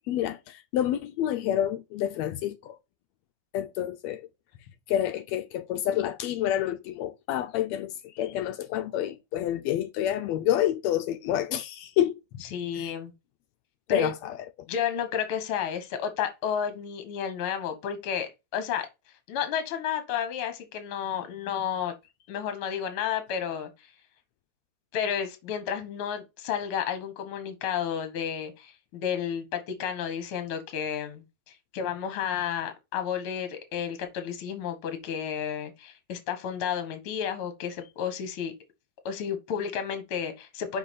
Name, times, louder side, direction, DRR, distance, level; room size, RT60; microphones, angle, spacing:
voice 1, 0.1-2.8 3.5-4.3 4.9-12.1 12.7-12.9 13.9-14.4, left 11 dB, 80° left, 1.6 m, -28 dB
voice 2, 12.5-13.1 13.9-14.1 14.7-18.9 19.3-21.9 22.3-23.7 24.9-38.5 39.0-40.8, left 8 dB, 55° left, 1.8 m, -31 dB
5.7 x 5.2 x 4.0 m
omnidirectional pair, 3.4 m